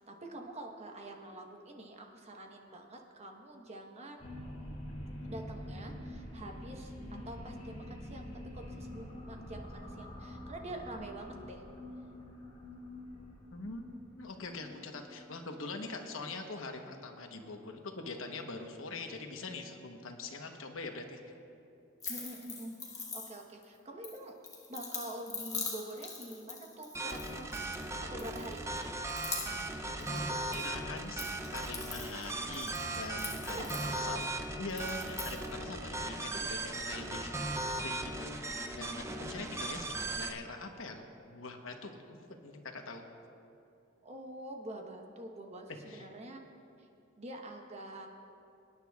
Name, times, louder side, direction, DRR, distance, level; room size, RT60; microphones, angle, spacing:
voice 1, 0.1-4.3 5.2-11.6 22.1-24.3 24.7-27.5 28.0-28.6 33.5-34.2 44.0-46.5 47.2-48.1, right 1 dB, 35° right, 2 dB, 1.1 m, -46 dB
sound 1, 4.2-17.0, left 1 dB, 35° left, 2.2 m, -46 dB
voice 2, 13.5-13.8 14.2-21.2 29.9-30.2 30.5-31.2 31.5-34.3 34.6-37.3 37.8-38.4 38.7-39.9 40.1-43.1 45.9-46.1, left 3 dB, 85° left, 4 dB, 1.0 m, -43 dB
sound 2, 22.0-23.6 24.0-27.9 28.2-28.8 29.1-29.7 30.0-30.7 31.0-34.3 34.7-35.4, left 4 dB, 15° left, 1.4 m, -43 dB
sound 3, 26.9-40.3, right 2 dB, 15° right, 0.6 m, -38 dB
24.5 x 9.9 x 2.4 m, 2.7 s
head